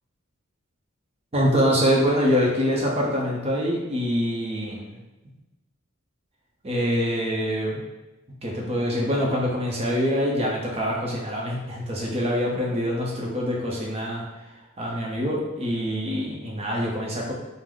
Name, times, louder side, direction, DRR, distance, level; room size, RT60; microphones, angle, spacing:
voice 1, 1.3-5.0 6.6-7.8 8.4-14.2 14.8-17.3, equal, 30° right, -3 dB, 0.7 m, -25 dB
5.0 x 2.0 x 3.8 m, 1.0 s
head